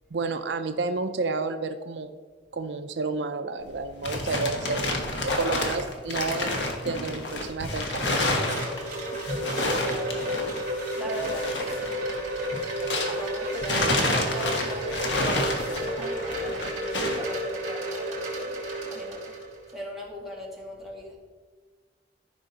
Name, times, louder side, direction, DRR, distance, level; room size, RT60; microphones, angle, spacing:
voice 1, 0.1-2.1 2.5-6.6 6.9-8.6, right 3 dB, 70° right, 8 dB, 0.5 m, -31 dB
sound 1, 3.6-13.3 13.6-17.3, left 2 dB, 70° left, 1.3 m, -29 dB
Wind chime, 7.5-19.7, right 1 dB, 45° right, 3.2 m, -32 dB
voice 2, 9.5-12.0 13.0-19.4 19.7-21.2, equal, ahead, -5 dB, 2.3 m, -40 dB
14.5 x 5.6 x 4.0 m, 1.5 s
head